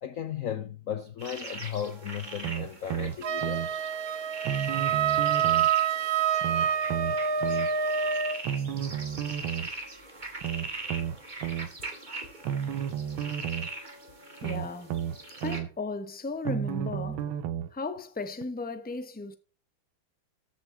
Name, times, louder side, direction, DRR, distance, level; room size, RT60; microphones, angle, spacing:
voice 1, 0.0-3.7, left 9 dB, 70° left, 0.7 m, -35 dB
sound 1, 1.2-15.6, right 2 dB, 20° right, 2.3 m, -42 dB
sound 2, 2.4-3.7 4.5-5.7 6.4-7.7 8.5-9.7 10.4-11.7 12.5-13.7 14.4-15.7 16.5-17.7 18.4-18.5, right 9 dB, 75° right, 1.7 m, -32 dB
Wind instrument woodwind instrument, 3.2-8.4, right 7 dB, 55° right, 1.2 m, -27 dB
voice 2, 14.4-14.9 15.4-17.3 17.7-19.4, left 3 dB, 5° left, 0.7 m, -35 dB
14.0 x 7.5 x 4.4 m
omnidirectional pair, 2.3 m